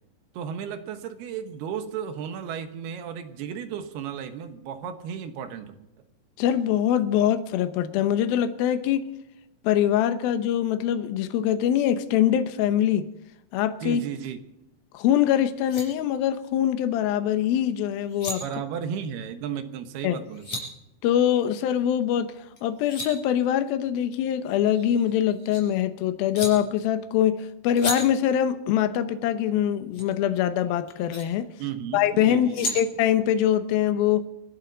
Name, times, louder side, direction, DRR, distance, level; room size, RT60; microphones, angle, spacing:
voice 1, 0.3-5.8 13.8-14.4 18.4-20.6 31.6-32.8, right 8 dB, 70° right, 8 dB, 2.6 m, -34 dB
voice 2, 6.4-9.0 9.6-13.1 13.5-14.0 14.9-18.4 20.0-20.2 21.0-22.3 22.6-31.5 31.9-34.3, left 10 dB, 90° left, 9 dB, 2.1 m, -23 dB
sound 1, 15.2-15.3 15.5-15.8 17.9-18.4 20.0-20.6 22.6-23.1 24.5-25.6 26.3-26.5 27.7-28.0 29.9-30.0 30.9-31.2 32.2-32.8, left 2 dB, 35° left, 5.6 m, -33 dB
26.5 x 11.5 x 4.0 m, 0.90 s
omnidirectional pair, 5.7 m